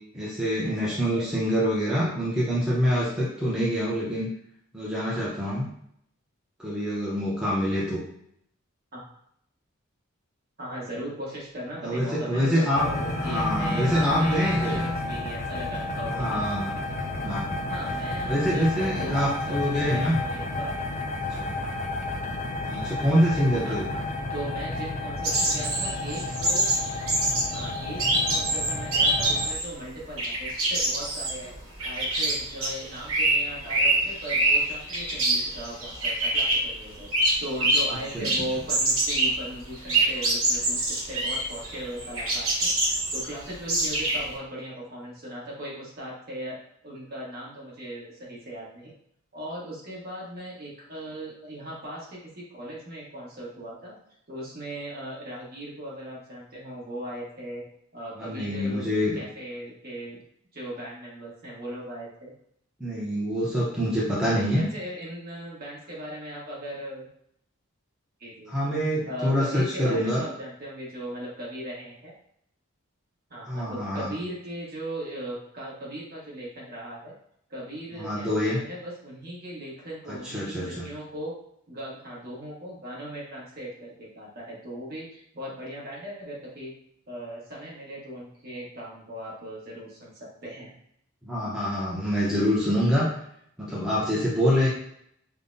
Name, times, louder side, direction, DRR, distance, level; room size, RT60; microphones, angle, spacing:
voice 1, 0.1-4.3 4.7-5.7 6.6-8.0 11.8-12.8 13.2-14.8 16.1-16.7 17.2-17.6 18.3-20.2 21.4-21.5 22.6-23.9 38.1-38.3 58.2-59.2 62.8-64.6 68.5-70.2 73.5-74.1 77.9-78.6 80.1-80.9 91.2-93.1 93.6-94.7, equal, 5° right, -7 dB, 0.7 m, -25 dB
voice 2, 0.8-1.3 8.9-9.0 10.6-16.6 17.7-20.7 23.6-24.0 24.3-26.7 27.5-31.5 31.8-46.6 46.8-48.9 49.3-54.0 54.3-57.6 57.9-58.9 59.1-60.2 60.5-62.3 64.3-67.1 68.2-68.7 69.1-72.1 73.3-77.1 77.5-81.3 81.7-86.7 87.1-90.7, right 1 dB, 45° right, -5 dB, 1.3 m, -38 dB
Bowed string instrument, 11.8-15.2, equal, 25° right, 1.0 m, -33 dB
sound 1, 12.7-29.5, left 2 dB, 35° left, 0.3 m, -31 dB
sound 2, 25.2-29.7 30.0-38.0 38.2-44.3, right 2 dB, 75° right, 1.1 m, -25 dB
5.3 x 2.1 x 2.6 m, 0.70 s
head